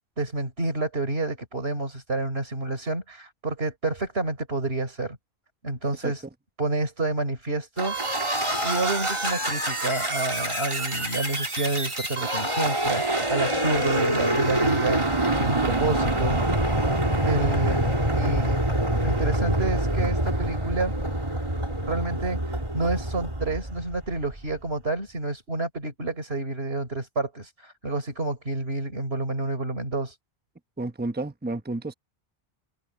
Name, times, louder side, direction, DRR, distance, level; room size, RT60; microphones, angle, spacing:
voice 1, 0.2-5.2 5.6-6.2 6.6-8.0 8.6-16.7 17.2-18.6 19.0-20.9 21.9-30.2, right 2 dB, 80° right, 4.6 m, -29 dB
sound 1, 7.8-24.4, right 1 dB, 30° right, 2.9 m, -26 dB
voice 2, 30.8-31.9, right 2 dB, 10° right, 0.9 m, -31 dB
omnidirectional pair, 1.0 m